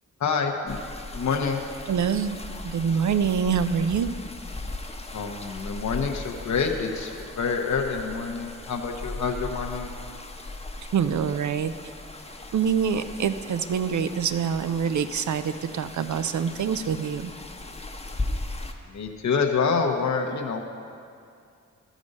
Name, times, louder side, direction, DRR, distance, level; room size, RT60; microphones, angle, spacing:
voice 1, 0.2-0.8 1.1-1.6 5.1-9.9 18.9-20.6, left 5 dB, 65° left, 2 dB, 0.8 m, -27 dB
sound 1, 0.7-18.7, left 2 dB, 20° left, 0.8 m, -38 dB
voice 2, 1.9-2.4 2.6-4.1 10.9-11.7 12.5-17.3, right 7 dB, 70° right, 11 dB, 0.5 m, -25 dB
13.0 x 5.1 x 5.3 m, 2.4 s
cardioid pair, 60°, 31 cm